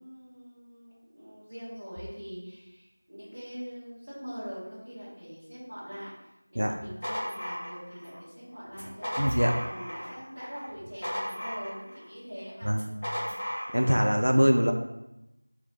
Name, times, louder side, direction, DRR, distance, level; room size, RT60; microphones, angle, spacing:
voice 1, 0.0-6.1 6.5-12.7 13.1-13.4 14.3-14.7, equal, 25° right, -9 dB, 0.8 m, -43 dB
sound 1, 7.0-8.2 8.7-10.2 10.5-12.0 12.7-14.1, equal, 10° left, 0.4 m, -35 dB
voice 2, 9.2-9.6 12.6-13.0 13.7-14.7, equal, 70° right, 2 dB, 0.3 m, -23 dB
2.3 x 2.2 x 3.8 m, 0.93 s
figure-of-eight pair, 180°, 0 cm